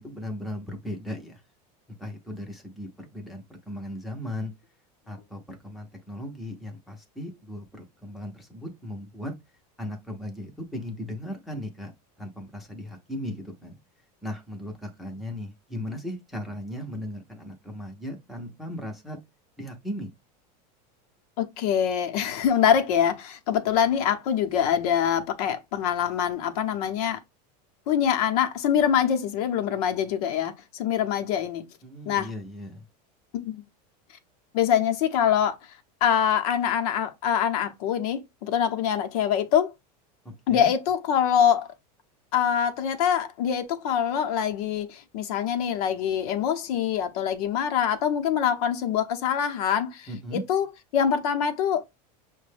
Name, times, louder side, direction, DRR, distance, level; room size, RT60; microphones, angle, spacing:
voice 1, 0.0-1.4 2.0-4.5 5.1-9.3 9.8-11.9 12.2-13.8 14.2-19.2 19.6-20.1 31.8-32.9 40.5-40.7 50.1-50.4, left 1 dB, ahead, 0.6 m, -37 dB
voice 2, 21.4-27.2 27.9-31.6 32.1-32.3 33.3-33.6 34.5-35.6 36.0-39.7 40.5-41.7 42.3-50.7 50.9-51.8, left 8 dB, 70° left, 0.8 m, -24 dB
6.0 x 2.1 x 3.2 m
supercardioid pair, 160°, 20 cm